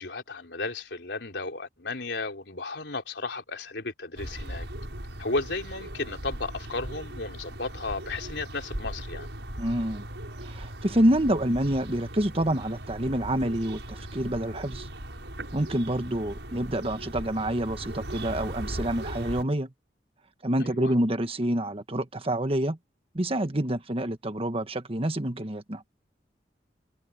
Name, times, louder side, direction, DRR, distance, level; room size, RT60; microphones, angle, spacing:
voice 1, 0.0-4.7 5.2-9.3 20.7-20.9, left 3 dB, 75° left, 4.1 m, -34 dB
sound 1, 4.2-19.4, right 1 dB, 90° right, 6.7 m, -38 dB
voice 2, 9.6-10.0 10.4-14.9 15.5-19.7 20.4-22.8 23.1-25.8, right 1 dB, 35° right, 1.5 m, -27 dB
head